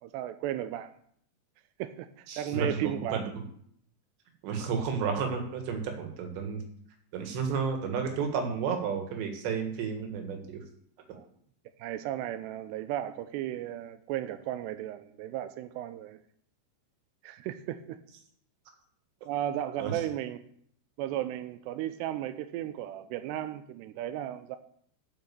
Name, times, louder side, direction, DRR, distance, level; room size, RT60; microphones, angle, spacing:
voice 1, 0.0-0.9 1.8-3.2 11.1-11.3 11.8-16.2 17.2-18.0 19.3-20.4 21.0-24.6, right 12 dB, 90° right, 9 dB, 2.4 m, -35 dB
voice 2, 2.3-3.3 4.4-6.6 7.1-10.6 19.8-19.9, right 6 dB, 70° right, 4 dB, 3.7 m, -32 dB
12.0 x 5.9 x 6.9 m, 0.66 s
omnidirectional pair, 5.5 m